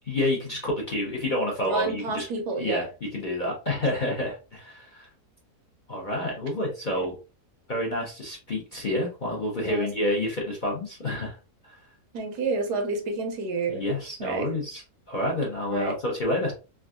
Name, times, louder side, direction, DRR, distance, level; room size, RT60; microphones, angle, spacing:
voice 1, 0.1-2.3 2.6-2.9 3.1-5.1 5.9-7.1 7.7-11.4 11.6-11.8 13.7-16.5, left 1 dB, 45° left, 0.7 m, -29 dB
voice 2, 1.7-2.9 6.9-7.1 9.6-9.9 12.1-13.8 14.2-14.5 15.7-16.0, right 3 dB, 80° right, 1.4 m, -29 dB
3.5 x 2.3 x 2.3 m
omnidirectional pair, 1.7 m